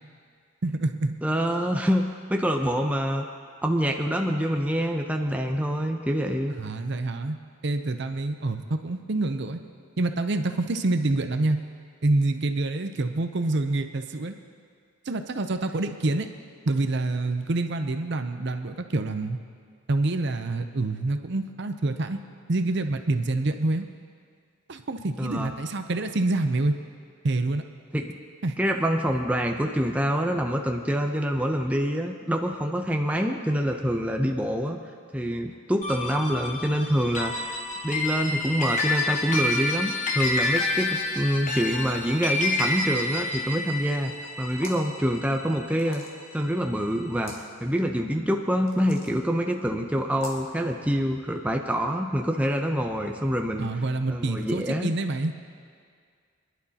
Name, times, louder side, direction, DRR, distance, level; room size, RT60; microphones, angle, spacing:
voice 1, 0.6-1.1 6.6-7.4 7.6-9.6 10.0-11.6 12.0-14.3 15.1-16.3 16.7-19.4 19.9-22.2 22.5-23.9 24.7-26.8 27.2-27.6 28.4-28.5 53.6-55.3, right 2 dB, 55° right, 7 dB, 0.6 m, -27 dB
voice 2, 1.2-3.3 3.6-6.5 25.2-25.5 27.9-28.1 28.6-34.8 35.1-37.6 37.8-44.1 44.4-46.0 46.3-47.3 47.6-53.7 54.1-54.9, equal, 5° right, 2 dB, 0.6 m, -26 dB
sound 1, 35.8-46.4, left 2 dB, 35° left, 1.1 m, -29 dB
sound 2, 44.4-44.9 45.8-46.4 47.1-47.4 48.7-49.1 50.1-50.5, left 1 dB, 65° left, 1.8 m, -40 dB
24.0 x 11.0 x 2.9 m, 2.1 s
head